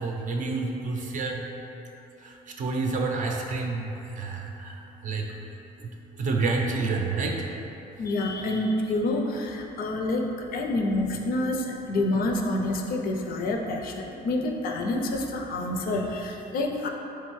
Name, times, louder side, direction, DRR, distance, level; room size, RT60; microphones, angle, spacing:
voice 1, 0.0-1.4 2.6-3.9 4.2-4.7 5.0-5.2 6.2-7.4, right 3 dB, 50° right, 1 dB, 0.5 m, -28 dB
voice 2, 8.0-16.9, left 2 dB, 60° left, 2 dB, 0.4 m, -28 dB
3.7 x 3.2 x 3.1 m, 3.0 s
cardioid pair, 110°, 17 cm